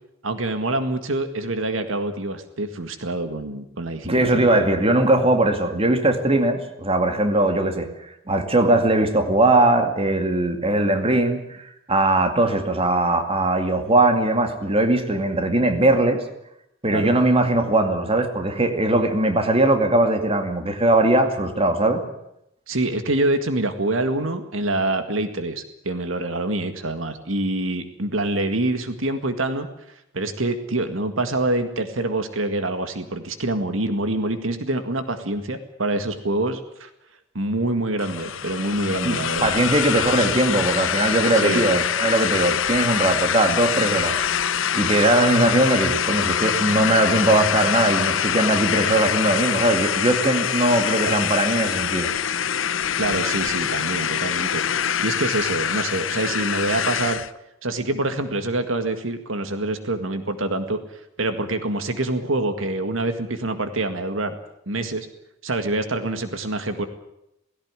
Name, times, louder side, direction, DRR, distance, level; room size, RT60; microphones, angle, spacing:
voice 1, 0.2-4.8 16.9-17.1 22.7-29.7 30.1-36.9 37.3-39.5 41.3-41.6 51.0-51.2 53.0-57.2 57.6-60.8 61.2-64.4 64.7-65.1 65.4-66.9, right 2 dB, 80° right, 8 dB, 2.0 m, -26 dB
voice 2, 4.0-7.9 8.3-16.2 16.8-22.0 39.0-44.2 44.7-52.1, right 2 dB, 30° right, 6 dB, 2.3 m, -20 dB
sound 1, 38.0-57.3, left 8 dB, 70° left, 0.8 m, -24 dB
18.0 x 16.5 x 9.7 m, 0.82 s
head